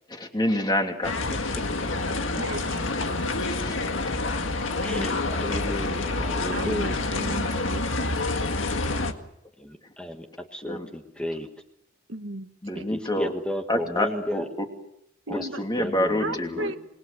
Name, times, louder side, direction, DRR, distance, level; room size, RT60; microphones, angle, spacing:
voice 1, 0.1-1.2 3.6-3.7 10.6-10.9 12.6-13.3 13.7-14.7 15.3-16.7, left 1 dB, 20° left, 3 dB, 2.9 m, -27 dB
sound 1, 1.0-9.1, left 2 dB, 80° left, 1.9 m, -27 dB
voice 2, 2.4-3.4 6.5-7.9 12.1-12.8 15.3-15.6 16.2-16.8, right 2 dB, 75° right, 7 dB, 1.7 m, -36 dB
voice 3, 4.8-6.9 9.6-10.3 10.5-11.5 12.9-14.5 15.3-15.4 15.8-16.7, equal, 5° left, 4 dB, 1.5 m, -33 dB
27.0 x 21.0 x 6.8 m, 0.77 s
head